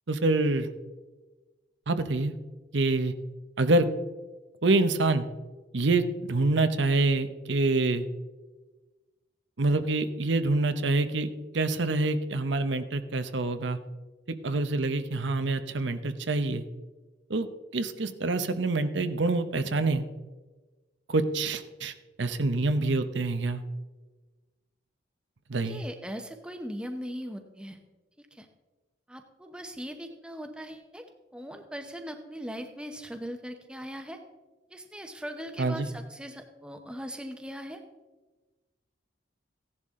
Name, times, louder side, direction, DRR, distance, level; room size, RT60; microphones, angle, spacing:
voice 1, 0.1-0.7 1.9-2.3 2.7-3.1 3.6-3.9 4.6-5.3 5.7-8.0 9.6-11.3 11.5-13.8 14.4-16.6 17.3-17.5 17.7-20.0 21.1-23.6 25.5-25.8 35.6-35.9, right 2 dB, 75° right, 9 dB, 0.8 m, -26 dB
voice 2, 25.6-27.8 28.2-28.5 29.1-31.0 31.3-34.2 34.7-37.8, equal, 5° right, 5 dB, 0.8 m, -40 dB
15.5 x 10.5 x 3.7 m, 1.2 s
head